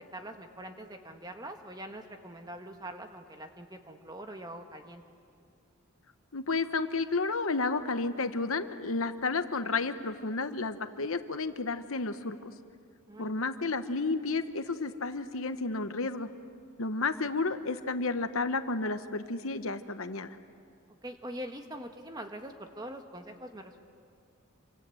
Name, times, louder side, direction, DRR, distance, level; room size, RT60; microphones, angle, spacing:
voice 1, 0.1-5.0 13.1-13.4 21.0-23.8, right 1 dB, 20° right, 5 dB, 1.5 m, -43 dB
voice 2, 6.3-12.5 13.2-16.3 16.8-20.3, left 3 dB, 65° left, 9 dB, 1.1 m, -31 dB
29.0 x 25.0 x 7.9 m, 2.3 s
head